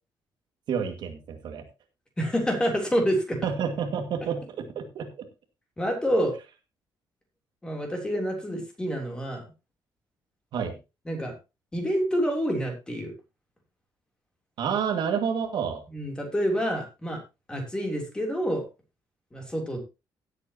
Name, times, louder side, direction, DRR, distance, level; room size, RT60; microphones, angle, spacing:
voice 1, 0.7-1.6 3.4-5.1 10.5-10.8 14.6-15.8, right 7 dB, 65° right, 5 dB, 2.1 m, -29 dB
voice 2, 2.2-3.4 5.8-6.3 7.6-9.4 11.0-11.3 11.7-13.1 15.9-17.2 17.5-18.6 19.3-19.8, equal, 10° left, 2 dB, 3.4 m, -27 dB
17.0 x 8.2 x 2.9 m, 0.27 s
cardioid pair, 170°, 8 cm